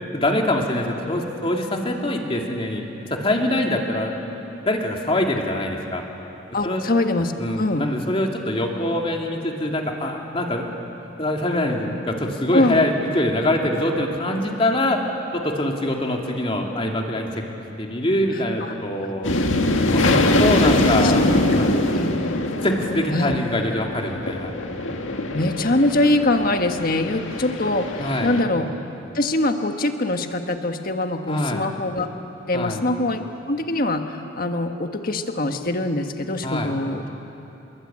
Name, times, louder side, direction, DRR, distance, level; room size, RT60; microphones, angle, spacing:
voice 1, 0.1-2.8 3.1-4.1 4.7-6.0 6.6-6.8 7.4-10.7 11.2-15.0 15.3-17.4 17.8-19.3 19.9-21.2 21.5-21.7 22.6-24.5 28.0-28.4 31.3-31.7 32.5-32.8 36.4-36.7, left 1 dB, 30° left, 1 dB, 2.7 m, -24 dB
voice 2, 6.5-7.3 7.6-7.9 12.5-12.8 18.6-18.7 19.3-19.5 20.4-20.7 21.0-21.1 21.9-22.1 23.1-23.4 25.3-28.7 29.1-32.1 32.5-37.1, left 2 dB, 45° left, 6 dB, 1.5 m, -23 dB
sound 1, 19.2-28.4, left 1 dB, 80° left, 1.9 m, -23 dB
28.5 x 22.0 x 8.8 m, 3.0 s
head